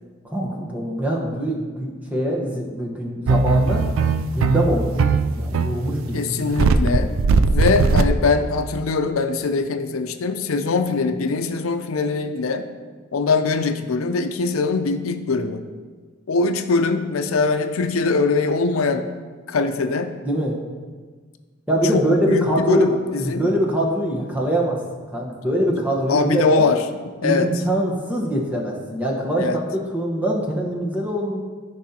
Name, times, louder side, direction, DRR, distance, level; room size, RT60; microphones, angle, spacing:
voice 1, 0.2-3.8 4.3-6.5 20.2-20.6 21.7-24.8 25.1-26.6 27.2-31.4, equal, 10° right, -2 dB, 1.1 m, -23 dB
sound 1, 3.3-8.8, right 4 dB, 75° right, 0.4 m, -19 dB
voice 2, 6.1-7.2 7.5-12.7 13.1-15.6 16.3-19.0 19.5-20.1 21.9-23.5 26.1-26.8 27.2-27.5 29.3-29.6, left 4 dB, 90° left, 8 dB, 0.5 m, -22 dB
13.0 x 5.4 x 2.9 m, 1.5 s
head